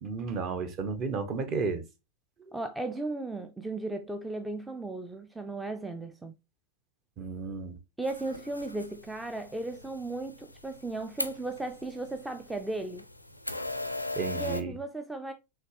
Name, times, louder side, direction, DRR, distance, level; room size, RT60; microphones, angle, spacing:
voice 1, 0.0-1.8 7.2-7.7 14.2-14.7, right 4 dB, 35° right, 0.9 m, -32 dB
voice 2, 2.5-6.3 8.0-13.0 14.3-15.3, right 2 dB, 5° right, 0.4 m, -36 dB
sound 1, 8.0-14.6, left 2 dB, 90° left, 0.4 m, -39 dB
5.7 x 3.1 x 2.8 m
figure-of-eight pair, 90°, 0 cm